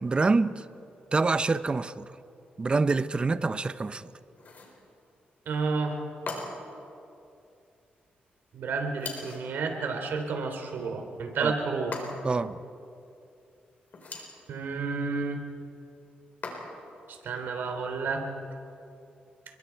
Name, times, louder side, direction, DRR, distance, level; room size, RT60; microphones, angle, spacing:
voice 1, 0.0-0.6 1.1-2.1 2.6-4.0 11.4-11.5 12.2-12.6, right 3 dB, 30° right, 13 dB, 0.8 m, -26 dB
sound 1, 4.4-4.8 6.3-6.8 9.0-9.5 11.9-12.4 13.9-14.4 16.4-17.0, left 3 dB, 55° left, 4.5 m, -39 dB
voice 2, 5.5-6.0 8.5-12.0 14.5-15.4 17.2-18.3, right 4 dB, 80° right, 4 dB, 3.4 m, -31 dB
30.0 x 22.5 x 4.7 m, 2.6 s
cardioid pair, 95°, 3 cm